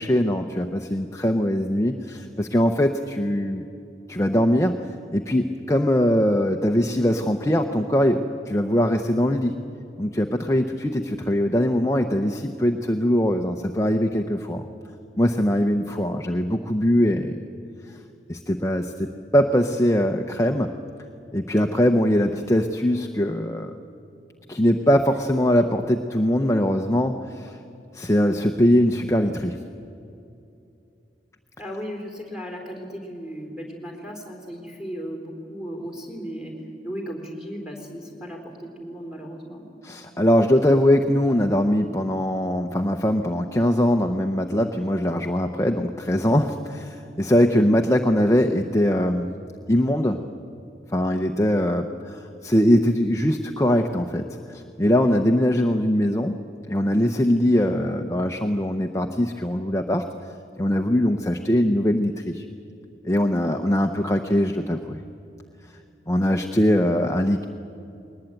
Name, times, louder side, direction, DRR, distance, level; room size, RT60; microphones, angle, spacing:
voice 1, 0.0-3.6 4.1-4.7 5.1-9.6 10.0-14.6 15.2-17.4 18.3-20.7 21.3-23.7 24.5-27.6 27.9-29.6 39.8-49.3 49.7-50.2 50.9-54.2 54.5-56.4 56.7-60.0 60.6-62.5 63.0-65.0 66.1-67.4, equal, 15° left, 4 dB, 0.7 m, -21 dB
voice 2, 31.6-36.5 36.8-39.6, equal, 5° right, 1 dB, 3.7 m, -36 dB
21.0 x 19.5 x 9.0 m, 2.7 s
head